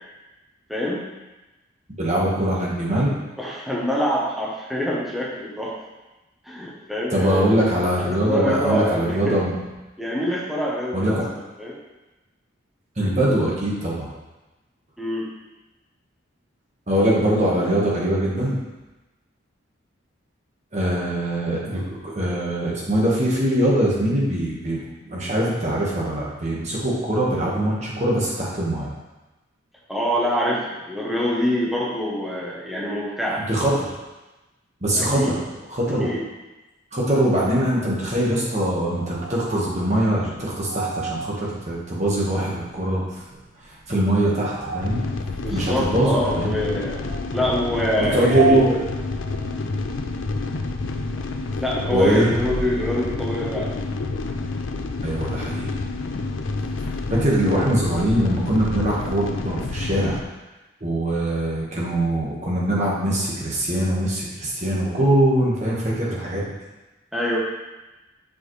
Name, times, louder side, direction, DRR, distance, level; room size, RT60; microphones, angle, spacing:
voice 1, 0.7-1.0 3.4-5.8 6.4-7.5 8.0-9.4 10.0-11.2 11.6-11.8 15.0-15.4 29.9-33.5 34.9-35.3 36.0-36.2 45.4-47.0 47.3-48.6 51.6-53.7 67.1-67.4, equal, ahead, -5 dB, 0.9 m, -25 dB
voice 2, 2.0-3.1 7.1-9.5 10.9-11.2 13.0-14.1 16.9-18.6 20.7-28.9 33.4-33.9 34.8-35.4 35.7-36.1 36.9-43.2 43.6-45.0 45.5-46.6 48.0-48.8 51.9-52.3 55.0-55.7 57.1-60.2 60.8-66.4, right 1 dB, 35° right, -5 dB, 1.5 m, -22 dB
sound 1, 37.1-49.7, right 4 dB, 65° right, 0.8 m, -34 dB
sound 2, 44.8-60.2, left 3 dB, 75° left, 0.5 m, -28 dB
6.9 x 5.0 x 3.2 m, 1.1 s
head